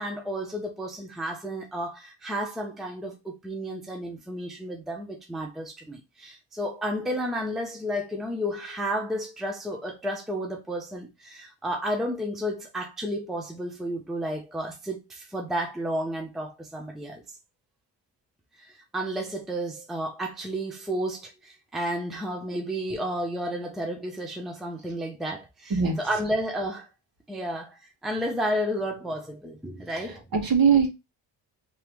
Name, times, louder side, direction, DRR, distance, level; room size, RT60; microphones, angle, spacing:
voice 1, 0.0-17.2 18.6-25.7 26.0-26.9 27.3-30.2, equal, ahead, 0.6 m, -32 dB
voice 2, 30.0-30.9, right 6 dB, 50° right, 1.3 m, -22 dB
3.5 x 3.0 x 3.0 m
cardioid pair, 125°, 46 cm